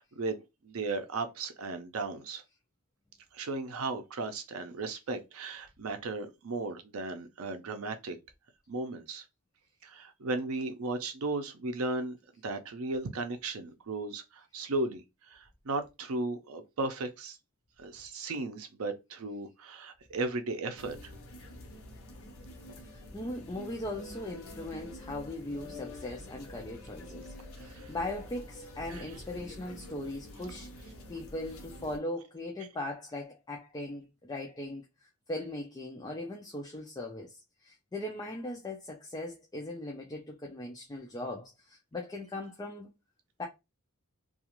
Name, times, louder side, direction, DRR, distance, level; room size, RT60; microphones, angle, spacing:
voice 1, 0.0-2.4 3.3-8.2 8.7-9.2 9.8-12.2 12.4-17.4 17.8-21.1 27.6-27.9 28.9-29.1, right 3 dB, 75° right, 0.5 m, -36 dB
sound 1, 20.8-32.0, left 1 dB, 70° left, 0.7 m, -47 dB
voice 2, 22.9-27.3 27.6-30.7 31.1-34.8 35.3-42.9 43.4-43.5, left 1 dB, 20° left, 0.4 m, -39 dB
2.4 x 2.3 x 2.9 m
head